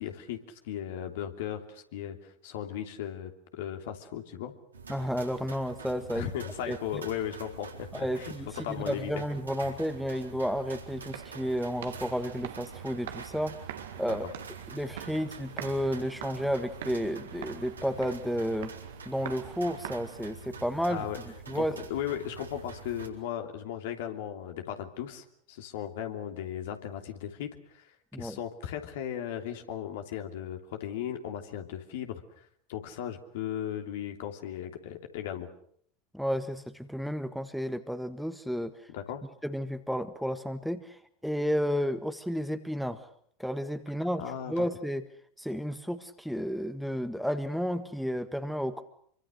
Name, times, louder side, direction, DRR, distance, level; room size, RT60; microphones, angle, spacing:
voice 1, 0.0-4.5 6.1-8.3 8.6-9.2 14.1-14.2 20.9-21.2 21.5-35.5 38.9-39.2 44.2-44.6, left 10 dB, 60° left, 5 dB, 3.0 m, -37 dB
sound 1, 4.7-23.1, right 4 dB, 80° right, 4.0 m, -46 dB
voice 2, 4.9-6.3 6.7-6.8 7.9-8.5 8.8-13.6 14.0-14.2 14.7-18.7 19.0-21.0 21.5-21.8 28.1-28.4 36.1-38.7 39.4-43.1 43.4-45.0 45.4-48.8, equal, ahead, 10 dB, 1.6 m, -32 dB
sound 2, 10.6-20.6, right 11 dB, 60° right, 1.8 m, -45 dB
26.5 x 24.5 x 6.5 m, 0.63 s
figure-of-eight pair, 80°, 0 cm